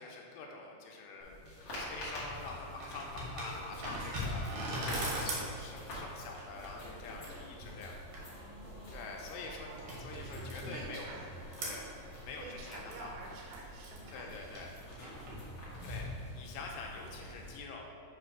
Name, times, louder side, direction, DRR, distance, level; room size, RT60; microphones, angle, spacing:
voice 1, 0.0-4.5 5.0-7.9 8.9-11.1 11.6-11.9 12.2-13.1 14.1-14.7 15.8-16.1 16.3-17.9, left 4 dB, 85° left, 0 dB, 2.7 m, -46 dB
sound 1, 1.2-17.6, left 1 dB, 55° left, 1.7 m, -47 dB
sound 2, 1.9-17.6, equal, 70° right, 1.7 m, -43 dB
voice 2, 8.1-11.6 12.4-15.4 15.6-16.2, right 3 dB, 85° right, -2 dB, 2.8 m, -51 dB
7.6 x 3.3 x 5.2 m, 2.2 s
omnidirectional pair, 5.1 m